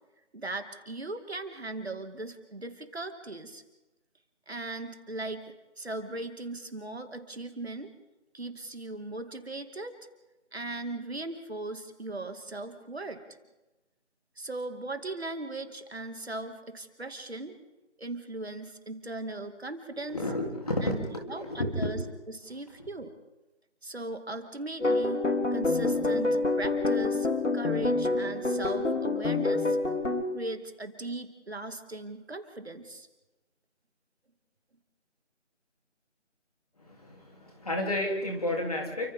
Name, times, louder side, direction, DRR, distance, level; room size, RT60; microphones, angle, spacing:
voice 1, 0.3-3.6 4.5-7.9 8.3-9.9 10.5-13.2 14.4-17.5 18.0-20.2 20.8-22.0 22.3-23.1 23.8-27.3 27.5-29.8 30.3-33.1, right 2 dB, 60° right, 7 dB, 2.3 m, -38 dB
voice 2, 20.1-22.0 36.8-39.1, left 1 dB, 30° left, 1 dB, 3.2 m, -31 dB
sound 1, 24.8-30.2, left 2 dB, 80° left, 3.1 m, -27 dB
29.5 x 25.0 x 3.7 m, 1.1 s
figure-of-eight pair, 175°, 36 cm